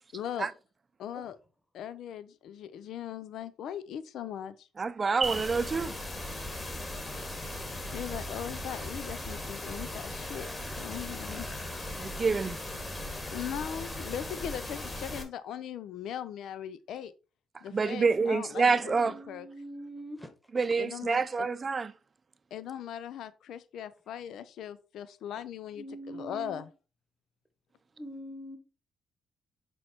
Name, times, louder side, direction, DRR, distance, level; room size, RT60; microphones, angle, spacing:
voice 1, 0.1-0.5 1.0-1.4 1.7-4.7 7.9-10.5 10.8-11.5 13.3-17.1 17.6-19.5 20.8-21.5 22.5-26.7, left 9 dB, 75° left, 0.5 m, -39 dB
voice 2, 4.8-5.9 12.0-12.6 17.7-19.2 20.5-21.9, right 4 dB, 35° right, 0.6 m, -27 dB
sound 1, 5.2-15.2, left 1 dB, 25° left, 2.3 m, -38 dB
voice 3, 10.3-10.8 11.2-11.7 18.9-20.3 25.8-26.6 28.0-28.6, right 1 dB, 10° left, 1.5 m, -44 dB
6.3 x 4.5 x 4.4 m
cardioid pair, 90°, 0 cm